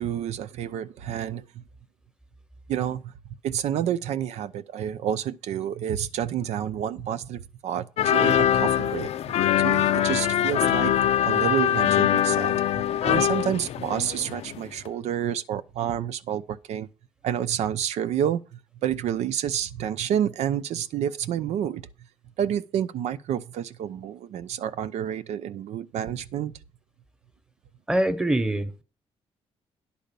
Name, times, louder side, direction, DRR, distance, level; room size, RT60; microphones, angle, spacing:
voice 1, 0.0-1.6 2.7-3.1 3.4-9.1 9.6-16.9 17.2-21.9 22.4-26.5, right 9 dB, 85° right, 0.7 m, -29 dB
sound 1, 8.0-14.6 14.8-14.9, left 10 dB, 70° left, 0.5 m, -23 dB
voice 2, 27.9-28.8, right 1 dB, 5° right, 1.0 m, -24 dB
10.5 x 5.0 x 6.8 m
cardioid pair, 115°, 11 cm